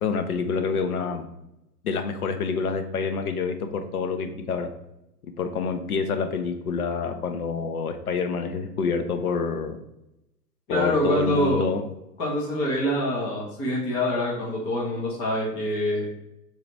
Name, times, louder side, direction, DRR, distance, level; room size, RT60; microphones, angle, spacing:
voice 1, 0.0-1.3 1.8-4.7 5.2-9.8 10.7-11.8, left 5 dB, 65° left, 7 dB, 0.8 m, -27 dB
voice 2, 10.7-11.6 12.2-16.1, left 1 dB, 10° left, -3 dB, 0.4 m, -25 dB
3.8 x 3.0 x 4.4 m, 0.88 s
figure-of-eight pair, 110°, 47 cm